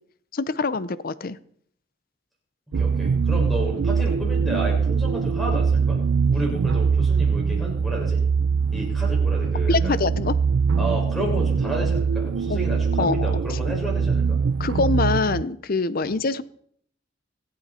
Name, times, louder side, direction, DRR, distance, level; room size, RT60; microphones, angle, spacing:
voice 1, 0.3-1.4 9.7-10.4 12.5-12.6 13.0-13.3 14.6-16.4, left 3 dB, 50° left, 16 dB, 0.7 m, -24 dB
voice 2, 2.7-6.0 6.3-8.2 8.7-10.0 10.8-14.4 16.0-16.1, right 1 dB, ahead, -3 dB, 5.9 m, -31 dB
sound 1, 2.7-15.4, right 5 dB, 90° right, 0.4 m, -22 dB
25.0 x 8.6 x 4.3 m, 0.63 s
head